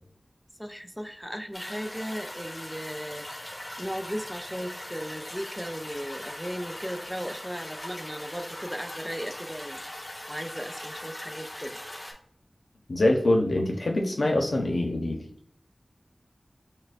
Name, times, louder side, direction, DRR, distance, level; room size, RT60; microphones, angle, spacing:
voice 1, 0.6-3.3 3.8-9.8 10.3-11.8, equal, ahead, 7 dB, 0.4 m, -36 dB
sound 1, 1.5-12.1, left 1 dB, 45° left, 1.2 m, -40 dB
voice 2, 12.9-15.2, left 1 dB, 85° left, 1 dB, 0.7 m, -24 dB
6.4 x 2.2 x 2.5 m, 0.65 s
wide cardioid pair, 45°, 0 cm